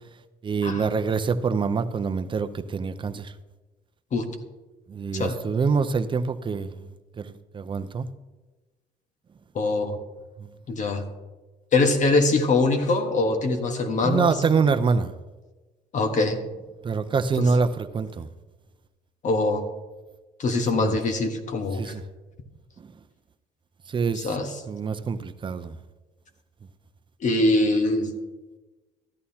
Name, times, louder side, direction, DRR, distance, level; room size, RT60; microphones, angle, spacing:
voice 1, 0.4-3.3 4.9-6.9 7.2-8.1 10.4-10.5 14.0-15.1 16.8-18.3 20.7-21.0 21.8-22.0 22.8-22.9 23.9-24.4 24.7-25.7, right 5 dB, 30° right, 0.6 m, -25 dB
voice 2, 9.5-10.0 10.7-11.0 11.7-14.4 15.9-16.4 17.4-17.5 19.2-19.6 20.4-21.9 24.1-24.5 27.2-28.1, left 2 dB, 45° left, 1.4 m, -23 dB
14.0 x 11.0 x 2.9 m
cardioid pair, 110°, 17 cm